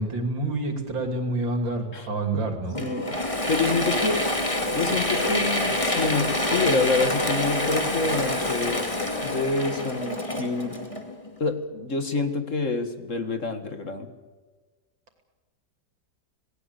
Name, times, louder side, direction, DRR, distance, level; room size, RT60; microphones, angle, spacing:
voice 1, 0.0-2.8, right 2 dB, 90° right, 6 dB, 3.7 m, -28 dB
voice 2, 2.3-4.4 4.7-8.8 9.2-10.8 11.4-14.1, left 3 dB, 45° left, 8 dB, 2.1 m, -27 dB
Mechanisms / Drill, 2.7-11.4, left 1 dB, 15° left, 2.4 m, -26 dB
27.0 x 18.5 x 8.3 m, 1.3 s
omnidirectional pair, 2.0 m